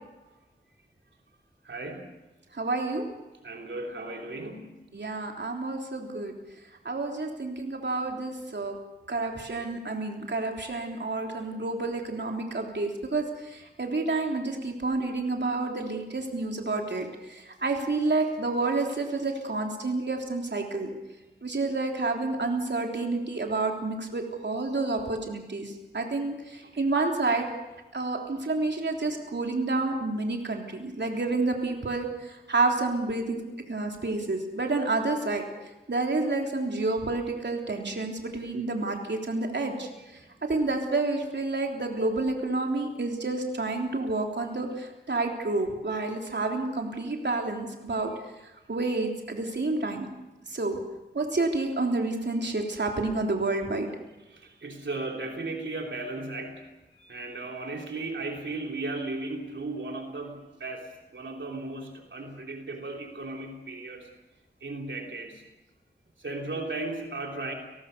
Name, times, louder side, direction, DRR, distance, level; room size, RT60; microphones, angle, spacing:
voice 1, 1.6-2.1 3.4-4.9 26.6-26.7 54.3-64.1 64.6-65.4 66.2-67.5, right 2 dB, 85° right, 1 dB, 3.4 m, -36 dB
voice 2, 2.5-3.0 4.9-6.3 6.9-8.7 9.1-20.9 21.4-27.5 27.9-33.4 33.7-35.5 35.9-48.1 48.7-50.1 50.5-50.8 51.1-53.9, right 3 dB, 70° right, 2 dB, 3.5 m, -29 dB
30.0 x 20.0 x 6.8 m, 1.1 s
wide cardioid pair, 55°, 19 cm